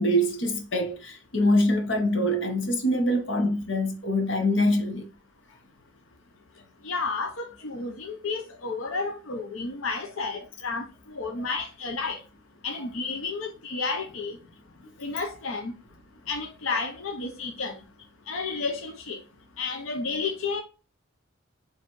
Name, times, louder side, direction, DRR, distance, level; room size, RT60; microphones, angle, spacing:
voice 1, 0.0-5.1, equal, 65° left, 1.0 m, -24 dB
voice 2, 6.8-12.2 12.6-14.4 15.0-15.7 16.3-17.7 18.3-19.2 19.6-20.6, left 4 dB, 90° left, 0.7 m, -31 dB
4.4 x 3.3 x 3.0 m
head